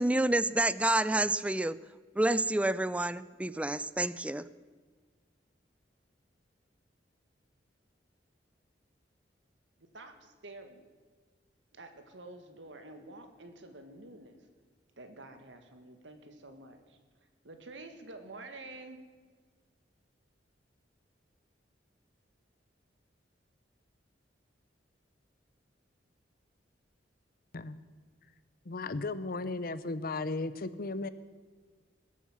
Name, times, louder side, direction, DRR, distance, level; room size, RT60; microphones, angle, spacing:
voice 1, 0.0-1.8 2.2-4.4, right 1 dB, 5° right, 16 dB, 0.4 m, -28 dB
voice 2, 9.8-10.9 11.7-14.5 15.0-17.0 17.4-19.0, right 2 dB, 85° right, 7 dB, 1.8 m, -49 dB
voice 3, 28.6-31.1, left 3 dB, 55° left, 14 dB, 0.8 m, -35 dB
20.5 x 8.4 x 7.4 m, 1.5 s
head